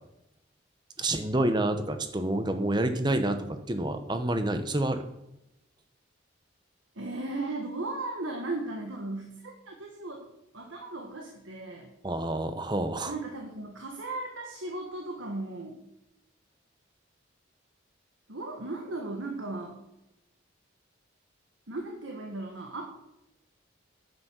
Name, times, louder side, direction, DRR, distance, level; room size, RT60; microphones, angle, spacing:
voice 1, 1.0-5.0 12.0-13.1, right 1 dB, 20° right, 8 dB, 0.9 m, -28 dB
voice 2, 6.9-10.2 10.5-11.9 13.1-15.8 18.3-19.8 21.7-22.8, right 2 dB, 80° right, 1 dB, 1.6 m, -36 dB
9.5 x 8.0 x 6.2 m, 0.87 s
head